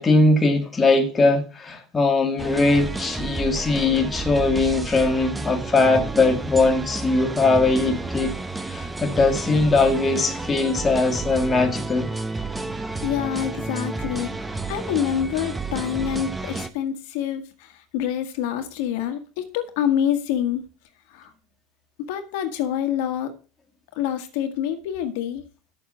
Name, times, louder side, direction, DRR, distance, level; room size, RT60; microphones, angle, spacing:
voice 1, 0.0-8.4 8.7-12.1, left 3 dB, 20° left, 1.9 m, -20 dB
sound 1, 2.4-16.7, right 3 dB, 10° right, 0.9 m, -31 dB
voice 2, 13.0-14.3 14.7-20.6 21.1-21.3 22.1-23.3 23.9-25.4, left 10 dB, 70° left, 1.6 m, -26 dB
8.3 x 7.1 x 6.3 m
supercardioid pair, 110°, 0 cm